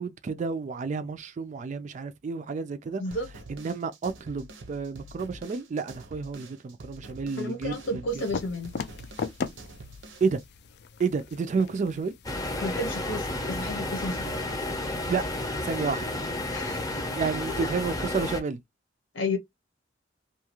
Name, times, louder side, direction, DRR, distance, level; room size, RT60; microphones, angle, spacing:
voice 1, 0.0-3.0 3.5-8.2 10.2-10.4 11.0-12.1 15.1-15.2 15.6-16.0 17.1-18.6, right 5 dB, 40° right, 0.3 m, -30 dB
voice 2, 3.0-3.3 7.4-8.7 12.6-14.4 16.5-16.9 17.5-17.7 19.1-19.4, left 2 dB, 90° left, 0.9 m, -32 dB
sound 1, 3.1-10.4, right 1 dB, 85° right, 0.6 m, -46 dB
sound 2, 8.1-14.5, left 5 dB, 60° left, 0.4 m, -39 dB
sound 3, 12.2-18.4, left 2 dB, 20° left, 0.7 m, -32 dB
2.7 x 2.3 x 2.9 m
head